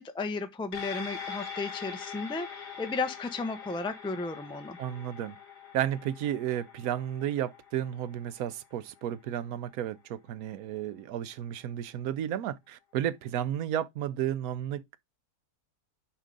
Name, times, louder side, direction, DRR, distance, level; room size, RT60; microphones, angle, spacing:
voice 1, 0.0-4.8, left 3 dB, 5° left, 0.7 m, -34 dB
sound 1, 0.7-9.4 9.8-9.9, left 6 dB, 85° left, 2.6 m, -43 dB
voice 2, 4.8-5.4 5.7-15.0, right 11 dB, 70° right, 1.1 m, -33 dB
7.4 x 5.0 x 3.8 m
omnidirectional pair, 1.7 m